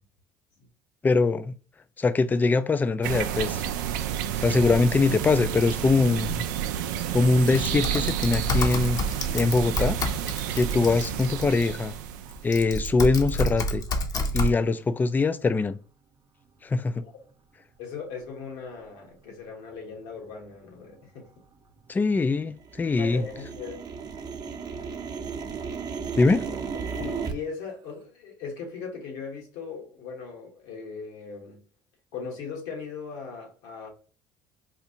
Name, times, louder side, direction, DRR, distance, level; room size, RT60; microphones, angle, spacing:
voice 1, 1.0-1.5 2.0-3.6 4.4-6.5 7.1-9.0 9.3-10.0 10.5-11.9 12.4-13.8 14.3-15.8 16.6-17.0 21.9-23.2 26.2-26.4, left 3 dB, 20° left, 0.3 m, -23 dB
sound 1, 3.0-12.5, right 10 dB, 80° right, 0.4 m, -30 dB
Typing, 7.5-11.7 12.3-14.5, left 1 dB, 35° left, 0.7 m, -29 dB
sound 2, 16.5-16.6 17.2-17.3 17.9-18.2 18.7-18.8 19.0-19.6 19.9-22.2 22.5-27.3, right 6 dB, 40° right, 0.7 m, -36 dB
voice 2, 17.8-21.3 23.0-23.8 26.5-26.6 26.9-31.6 32.1-33.9, left 5 dB, 75° left, 1.4 m, -38 dB
4.3 x 2.4 x 2.8 m
hypercardioid pair, 70°, 10 cm